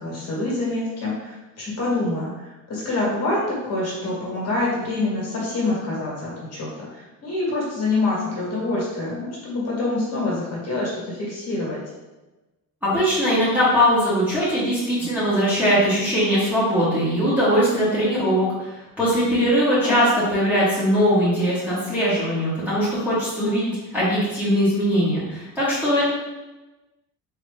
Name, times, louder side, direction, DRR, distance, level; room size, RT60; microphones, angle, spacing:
voice 1, 0.0-11.8 19.8-20.0 23.4-23.6, left 2 dB, 40° left, -6 dB, 1.5 m, -26 dB
voice 2, 12.8-18.7 19.0-26.1, equal, 5° right, -11 dB, 1.3 m, -20 dB
3.9 x 2.9 x 3.3 m, 1.1 s
cardioid pair, 165°, 38 cm